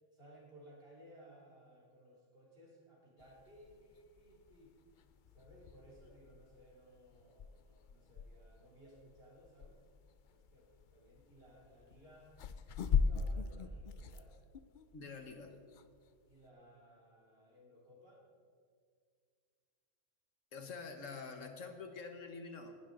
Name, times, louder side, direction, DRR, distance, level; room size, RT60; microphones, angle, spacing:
voice 1, 0.1-4.8 5.3-9.8 10.3-12.3 12.9-14.4 16.2-18.2, equal, 50° right, -3 dB, 3.3 m, -60 dB
sound 1, 3.2-16.5, left 6 dB, 55° left, 0.6 m, -41 dB
voice 2, 14.9-15.6 20.5-22.7, left 4 dB, 85° left, 5 dB, 1.7 m, -46 dB
19.0 x 12.0 x 3.9 m, 2.1 s
omnidirectional pair, 1.3 m